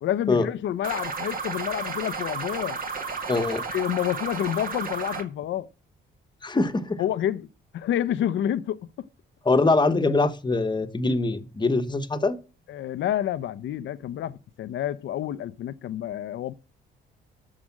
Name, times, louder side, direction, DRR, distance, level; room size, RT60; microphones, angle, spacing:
voice 1, 0.0-2.8 3.7-5.7 7.0-7.5 7.7-9.1 12.7-16.5, left 11 dB, 70° left, 0.7 m, -29 dB
sound 1, 0.8-5.2, right 4 dB, 45° right, 2.1 m, -32 dB
voice 2, 3.3-3.6 6.4-7.0 9.4-12.4, left 3 dB, 20° left, 1.2 m, -23 dB
13.0 x 5.1 x 7.3 m
cardioid pair, 90°, 20 cm